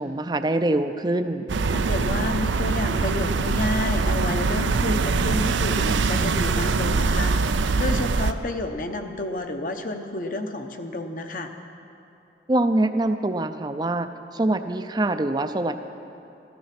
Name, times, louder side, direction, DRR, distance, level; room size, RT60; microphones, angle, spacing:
voice 1, 0.0-1.5 12.5-15.8, right 2 dB, 20° right, 9 dB, 0.5 m, -24 dB
sound 1, 1.5-8.3, right 4 dB, 85° right, 0.5 m, -23 dB
voice 2, 1.7-7.3 7.8-11.5, left 2 dB, 45° left, 5 dB, 0.9 m, -30 dB
13.5 x 13.0 x 5.9 m, 2.8 s
head